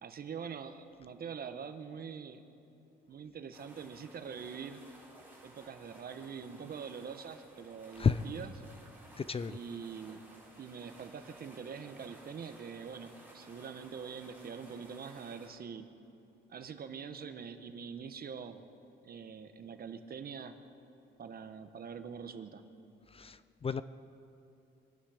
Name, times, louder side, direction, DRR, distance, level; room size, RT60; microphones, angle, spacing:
voice 1, 0.0-2.4 3.1-4.8 5.4-8.5 9.5-10.2 10.6-15.9 16.5-18.6 19.0-20.5 21.2-22.6, right 6 dB, 50° right, 9 dB, 1.1 m, -44 dB
sound 1, 3.5-15.5, right 1 dB, 10° right, 3.8 m, -57 dB
voice 2, 9.2-9.6 23.1-23.8, left 5 dB, 30° left, 14 dB, 0.5 m, -32 dB
24.5 x 11.5 x 5.0 m, 2.8 s
cardioid pair, 90°, 20 cm